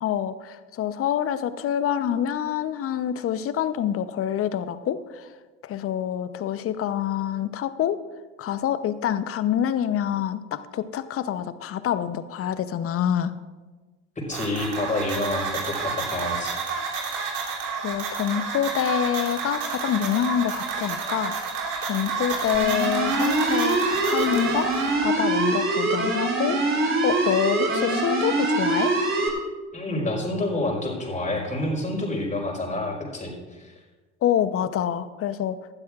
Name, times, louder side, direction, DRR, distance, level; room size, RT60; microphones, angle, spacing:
voice 1, 0.0-5.3 5.6-8.0 8.4-13.3 17.8-21.4 21.8-28.9 34.2-35.6, left 9 dB, 40° left, 13 dB, 0.8 m, -26 dB
voice 2, 14.2-16.6 29.7-33.7, left 2 dB, 20° left, 0 dB, 4.5 m, -28 dB
sound 1, 14.3-24.9, right 5 dB, 65° right, 3.0 m, -30 dB
sound 2, 22.5-29.3, right 2 dB, 35° right, 3.2 m, -24 dB
18.5 x 12.5 x 2.5 m, 1.3 s
hypercardioid pair, 70°, 35 cm